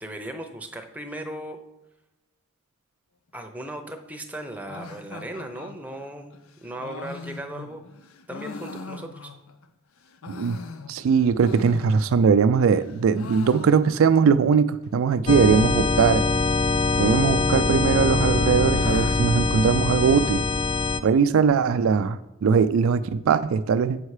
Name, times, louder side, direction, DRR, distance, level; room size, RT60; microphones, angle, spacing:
voice 1, 0.0-1.6 3.3-7.8 8.3-9.3, right 1 dB, 5° right, 4 dB, 0.6 m, -37 dB
sound 1, 4.7-9.7 10.0-12.4 12.7-14.3 14.5-14.6 14.8-14.9 15.6-16.0 17.0-17.6 18.0-20.4, left 4 dB, 90° left, 0.6 m, -41 dB
voice 2, 10.3-10.6 10.9-16.2 17.0-20.4 21.0-24.0, right 6 dB, 75° right, 12 dB, 0.4 m, -20 dB
sound 2, 15.3-21.0, left 3 dB, 25° left, 0.3 m, -23 dB
7.3 x 5.5 x 4.8 m, 0.97 s
head